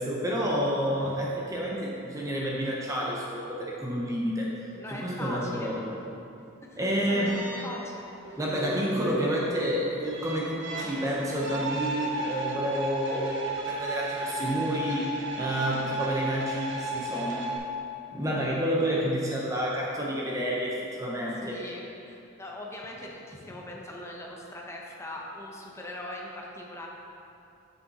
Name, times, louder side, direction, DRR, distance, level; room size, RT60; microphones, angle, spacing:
voice 1, 0.0-4.5 4.9-6.0 6.8-7.4 8.4-17.5 18.1-21.6, equal, 15° right, -4 dB, 0.8 m, -29 dB
voice 2, 4.7-5.7 6.0-6.1 6.6-8.0 12.1-12.4 12.6-12.7 21.4-26.9, left 1 dB, 15° left, -2 dB, 0.9 m, -41 dB
sound 1, 7.3-17.6, right 1 dB, 60° right, 1.0 m, -35 dB
7.2 x 6.9 x 4.1 m, 2.7 s
head